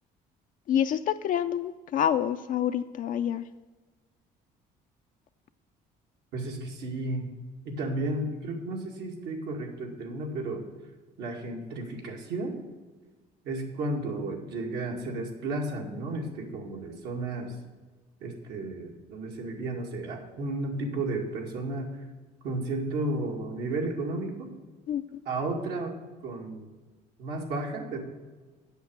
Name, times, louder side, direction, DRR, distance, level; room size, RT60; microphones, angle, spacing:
voice 1, 0.7-3.4 24.9-25.2, left 9 dB, 50° left, 8 dB, 0.4 m, -27 dB
voice 2, 6.3-7.3 7.6-10.6 11.2-12.5 13.4-17.6 18.2-21.9 22.4-24.5 25.3-26.0 26.2-26.7 27.2-28.0, right 2 dB, 75° right, 1 dB, 2.1 m, -33 dB
8.1 x 6.3 x 8.1 m, 1.3 s
cardioid pair, 110°, 17 cm